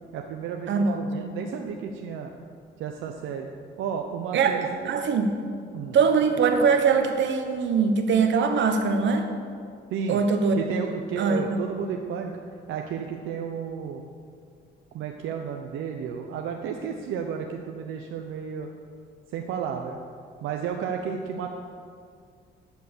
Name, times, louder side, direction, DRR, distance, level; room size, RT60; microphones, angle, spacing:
voice 1, 0.1-2.3 2.8-3.5 3.8-4.7 5.7-6.0 9.9-10.2 10.5-12.4 12.7-14.1 14.9-18.7 19.3-20.0 20.4-21.5, right 7 dB, 85° right, 3 dB, 0.7 m, -32 dB
voice 2, 0.7-1.0 4.3-5.3 5.9-9.3 10.1-10.6 11.2-11.6, right 5 dB, 70° right, 6 dB, 1.1 m, -22 dB
12.5 x 4.6 x 7.1 m, 2.2 s
cardioid pair, 90°, 20 cm